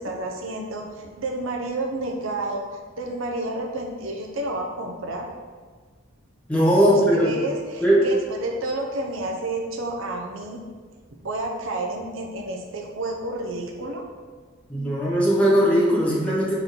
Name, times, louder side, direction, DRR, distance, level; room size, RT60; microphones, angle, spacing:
voice 1, 0.0-2.7 3.0-5.3 6.8-10.6 11.2-14.0, right 2 dB, 75° right, 1 dB, 0.8 m, -30 dB
voice 2, 6.5-7.3 7.8-8.0 14.7-16.5, equal, 5° left, -6 dB, 1.2 m, -19 dB
4.4 x 4.1 x 5.2 m, 1.5 s
head